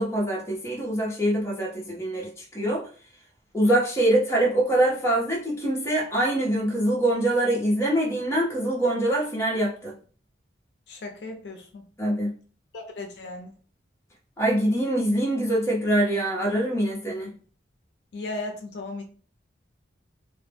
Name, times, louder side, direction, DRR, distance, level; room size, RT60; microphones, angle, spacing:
voice 1, 0.0-2.9 3.5-9.9 12.0-12.3 14.4-17.3, right 1 dB, 15° left, -3 dB, 0.6 m, -24 dB
voice 2, 10.9-11.9 12.7-13.5 18.1-19.0, left 2 dB, 65° left, 4 dB, 0.4 m, -36 dB
2.1 x 2.0 x 3.2 m, 0.41 s
head